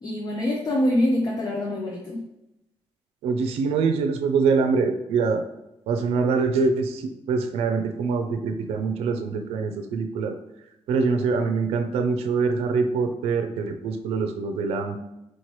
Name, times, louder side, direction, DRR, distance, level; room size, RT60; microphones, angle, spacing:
voice 1, 0.0-2.2, left 1 dB, 40° left, -1 dB, 0.6 m, -25 dB
voice 2, 3.2-5.4 5.9-10.4 10.9-15.0, right 4 dB, 90° right, 6 dB, 0.4 m, -24 dB
4.3 x 3.0 x 3.1 m, 0.90 s
cardioid pair, 100°, 10 cm